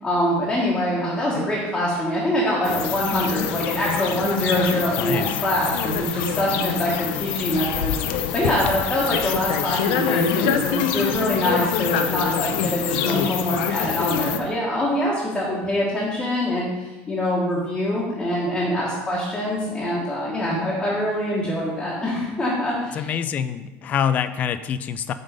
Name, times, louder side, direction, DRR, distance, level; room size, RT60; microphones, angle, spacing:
voice 1, 0.0-23.0, left 1 dB, 10° left, -7 dB, 1.3 m, -24 dB
sound 1, 2.6-14.4, left 8 dB, 70° left, 0.6 m, -25 dB
voice 2, 5.0-5.4 22.9-25.1, left 8 dB, 25° left, 12 dB, 0.3 m, -25 dB
8.8 x 3.8 x 5.2 m, 1.2 s
cardioid pair, 180°, 6 cm